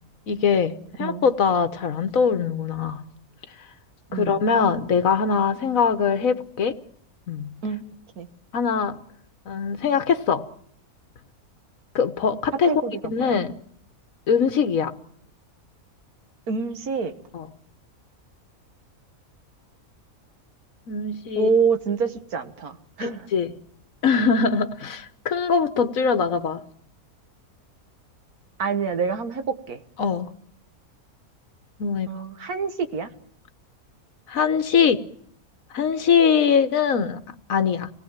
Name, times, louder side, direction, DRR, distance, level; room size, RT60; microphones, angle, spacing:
voice 1, 0.3-3.0 4.1-6.7 7.3-7.5 8.5-9.0 9.5-10.5 11.9-12.7 13.0-13.5 14.3-14.9 17.3-17.5 20.9-21.5 23.0-23.5 24.0-26.6 30.0-30.3 31.8-32.1 34.3-35.0 35.7-37.2 37.5-37.9, left 6 dB, 70° left, 11 dB, 1.5 m, -22 dB
voice 2, 12.7-13.4 16.5-17.1 21.4-23.3 28.6-29.8 32.1-33.1, right 5 dB, 85° right, 8 dB, 1.9 m, -26 dB
26.0 x 18.5 x 7.3 m, 0.64 s
omnidirectional pair, 1.5 m